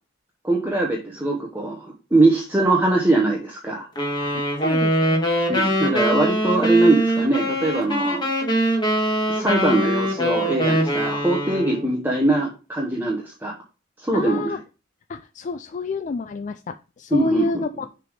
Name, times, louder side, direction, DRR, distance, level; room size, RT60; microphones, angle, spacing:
voice 1, 0.4-3.9 5.5-8.3 9.3-13.5 14.0-14.6 17.1-17.6, right 2 dB, 10° right, -2 dB, 0.9 m, -21 dB
sound 1, 4.0-11.9, equal, 25° left, 1.5 m, -22 dB
voice 2, 4.6-5.3 14.1-14.6 15.1-17.9, left 3 dB, 40° left, 9 dB, 0.3 m, -28 dB
6.7 x 3.5 x 4.9 m, 0.33 s
head